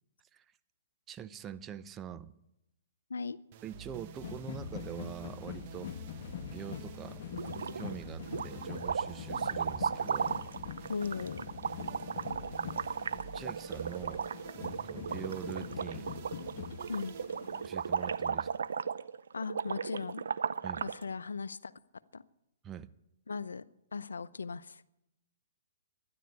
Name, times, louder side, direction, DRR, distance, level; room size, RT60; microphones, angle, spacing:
voice 1, 1.1-2.3 3.6-6.0 6.5-10.4 10.8-10.9 11.8-12.0 13.3-14.3 14.5-16.1 17.6-18.6 20.6-20.8 22.6-22.9, right 9 dB, 20° right, 14 dB, 0.7 m, -44 dB
sound 1, 3.5-18.9, right 8 dB, 45° right, 1.1 m, -51 dB
sound 2, 4.2-17.6, left 9 dB, 55° left, 1.2 m, -44 dB
sound 3, 7.3-8.0 8.3-21.0, right 6 dB, 75° right, 0.6 m, -36 dB
voice 2, 10.9-11.5 16.9-17.2 19.3-20.2 20.8-21.7 22.1-22.2 23.3-23.6 23.9-24.8, left 5 dB, 85° left, 17 dB, 0.6 m, -37 dB
12.5 x 11.0 x 9.6 m, 0.87 s
hypercardioid pair, 130°, 0 cm